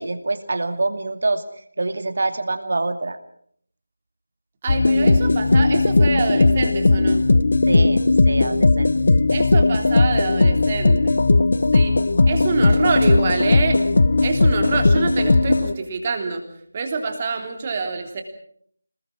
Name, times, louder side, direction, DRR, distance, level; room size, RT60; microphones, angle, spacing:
voice 1, 0.0-3.2 7.7-8.9, right 2 dB, 50° right, 9 dB, 2.5 m, -26 dB
voice 2, 4.6-7.3 9.3-11.3 11.7-12.0 12.2-13.8 14.2-16.4 16.7-18.2, right 4 dB, 25° right, 4 dB, 3.4 m, -25 dB
sound 1, 4.7-15.7, left 3 dB, 50° left, 1.0 m, -17 dB
27.5 x 20.5 x 6.2 m, 0.63 s
figure-of-eight pair, 160°, 0 cm